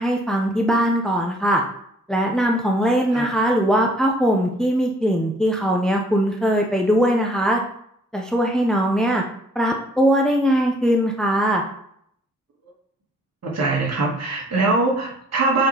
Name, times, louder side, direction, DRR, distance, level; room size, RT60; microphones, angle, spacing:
voice 1, 0.0-1.6 2.1-7.6 8.1-9.2 9.5-11.6, equal, ahead, 0 dB, 0.9 m, -20 dB
voice 2, 13.4-15.7, right 3 dB, 50° right, -3 dB, 2.2 m, -22 dB
7.1 x 4.2 x 3.5 m, 0.69 s
cardioid pair, 90°, 33 cm